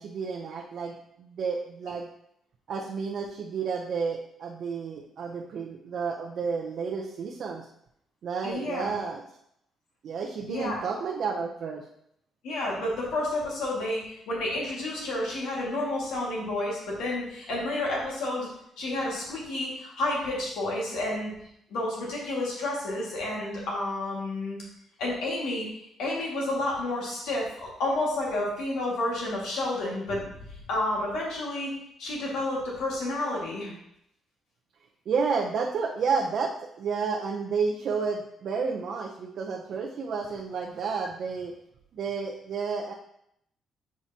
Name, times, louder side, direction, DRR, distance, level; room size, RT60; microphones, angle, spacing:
voice 1, 0.0-2.1 2.7-7.7 8.2-9.2 10.0-11.8 35.1-41.5 41.9-42.9, right 5 dB, 65° right, 0 dB, 0.6 m, -31 dB
voice 2, 8.4-8.9 10.5-10.8 12.4-18.5 18.8-21.3 21.7-24.6 25.0-25.7 26.0-31.7 32.0-33.7, left 1 dB, 90° left, -3 dB, 1.8 m, -30 dB
7.3 x 4.7 x 2.8 m, 0.75 s
cardioid pair, 90°, 0 cm